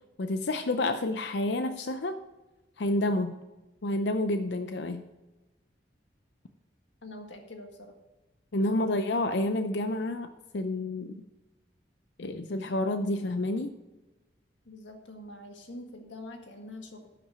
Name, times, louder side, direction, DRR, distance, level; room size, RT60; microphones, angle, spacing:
voice 1, 0.2-2.2 2.8-3.4 3.8-5.0 8.5-11.2 12.2-13.8, left 1 dB, 75° left, 8 dB, 0.5 m, -29 dB
voice 2, 7.0-8.0 8.5-9.0 14.7-17.1, left 1 dB, 90° left, 3 dB, 1.7 m, -45 dB
11.5 x 6.0 x 5.6 m, 1.1 s
head